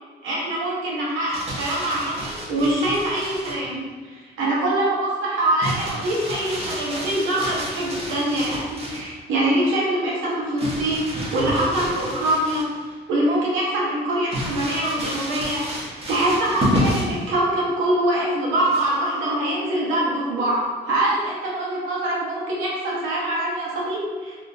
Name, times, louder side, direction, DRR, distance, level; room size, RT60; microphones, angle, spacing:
voice 1, 0.2-24.4, right 1 dB, 90° right, -5 dB, 0.9 m, -24 dB
Crumpling crinkling, 1.1-3.7 5.6-9.1 10.6-12.9 13.4-13.5 14.3-17.2 18.7-19.1, equal, 30° right, 1.1 m, -30 dB
3.7 x 2.5 x 2.5 m, 1.5 s
cardioid pair, 90°, 20 cm